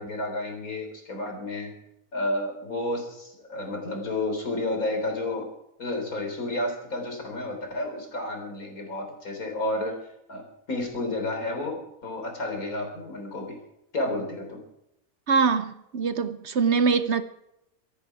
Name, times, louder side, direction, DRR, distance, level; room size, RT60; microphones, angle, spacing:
voice 1, 0.0-1.7 2.1-5.5 5.8-10.0 10.3-10.4 10.7-13.6 13.9-14.6, left 2 dB, 80° left, 4.3 m, -31 dB
voice 2, 15.3-17.2, right 5 dB, 55° right, 1.0 m, -23 dB
24.5 x 10.5 x 4.8 m
omnidirectional pair, 1.5 m